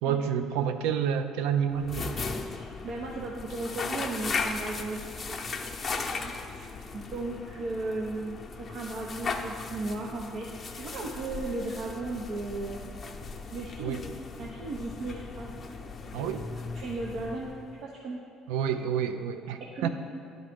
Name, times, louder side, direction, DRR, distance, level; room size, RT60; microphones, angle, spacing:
voice 1, 0.0-2.0 13.8-14.0 16.1-16.4 18.5-19.9, right 8 dB, 90° right, 9 dB, 0.4 m, -29 dB
sound 1, 1.7-17.8, left 4 dB, 30° left, 0.7 m, -37 dB
voice 2, 2.5-5.0 5.3-6.7 6.9-12.9 13.5-14.0 14.4-15.5 16.1-16.3 16.7-17.5 17.8-18.2 19.8-19.9, right 2 dB, 65° right, -2 dB, 0.8 m, -36 dB
10.0 x 4.0 x 5.1 m, 2.5 s
cardioid pair, 95°, 0 cm